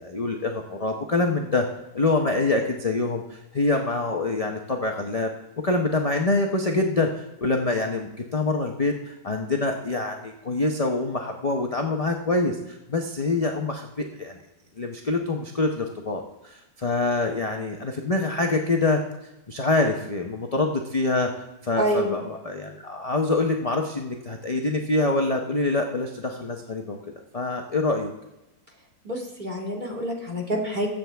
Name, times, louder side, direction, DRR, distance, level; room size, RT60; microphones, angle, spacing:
voice 1, 0.0-1.7 1.9-5.3 5.6-14.4 14.8-19.0 19.5-21.3 21.6-27.0 27.3-28.1, left 2 dB, 30° left, 2 dB, 0.6 m, -25 dB
voice 2, 21.8-22.2 29.0-30.9, equal, 30° right, -1 dB, 2.3 m, -27 dB
21.5 x 8.0 x 3.5 m, 0.99 s
omnidirectional pair, 1.8 m